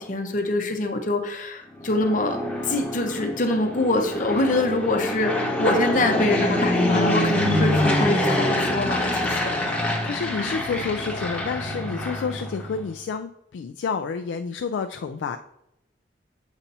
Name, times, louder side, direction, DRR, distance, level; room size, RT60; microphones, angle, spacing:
voice 1, 0.0-2.4 2.6-9.4, left 2 dB, 45° left, 5 dB, 0.8 m, -24 dB
Fixed-wing aircraft airplane, 1.8-12.9, left 1 dB, 10° left, 1.1 m, -25 dB
voice 2, 10.0-15.4, left 5 dB, 85° left, 6 dB, 0.3 m, -29 dB
7.1 x 2.8 x 5.4 m, 0.84 s
head